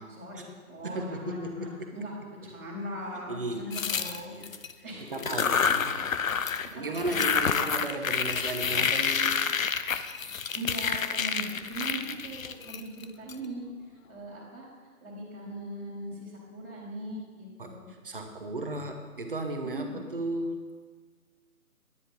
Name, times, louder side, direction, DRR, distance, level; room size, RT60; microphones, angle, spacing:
voice 1, 0.0-2.1 2.4-4.3 4.8-5.2 6.2-6.4 6.7-7.8 10.5-13.7 14.1-14.7 15.0-17.9 19.6-20.0, right 1 dB, 10° right, -15 dB, 1.3 m, -40 dB
voice 2, 0.8-1.9 3.3-4.5 5.1-6.0 6.4-9.4 17.6-17.8 18.0-20.6, right 2 dB, 35° right, 4 dB, 0.9 m, -35 dB
sound 1, 3.7-4.7 5.1-6.7 6.9-13.3, left 6 dB, 60° left, 0.6 m, -28 dB
10.0 x 9.1 x 4.2 m, 1.5 s
figure-of-eight pair, 165°, 46 cm